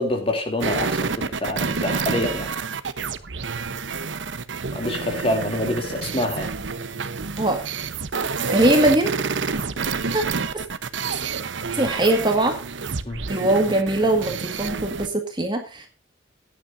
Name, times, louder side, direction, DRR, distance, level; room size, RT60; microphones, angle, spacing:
voice 1, 0.0-2.5 4.7-6.5 13.0-13.2, left 1 dB, 30° left, 4 dB, 2.9 m, -26 dB
sound 1, 0.6-15.1, right 5 dB, 75° right, 0.9 m, -28 dB
voice 2, 8.5-9.1 10.1-10.2 10.5-10.6 11.7-12.6 13.3-15.9, right 1 dB, 25° right, 4 dB, 1.8 m, -21 dB
16.5 x 10.0 x 2.6 m, 0.33 s
head